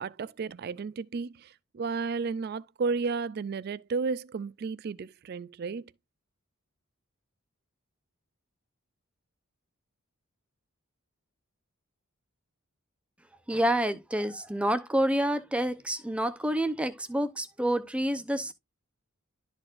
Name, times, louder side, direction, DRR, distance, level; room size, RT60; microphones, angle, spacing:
voice 1, 0.0-5.9, right 4 dB, 45° right, 0.3 m, -33 dB
voice 2, 13.5-18.5, right 1 dB, 5° right, 0.6 m, -28 dB
12.5 x 4.3 x 2.5 m
head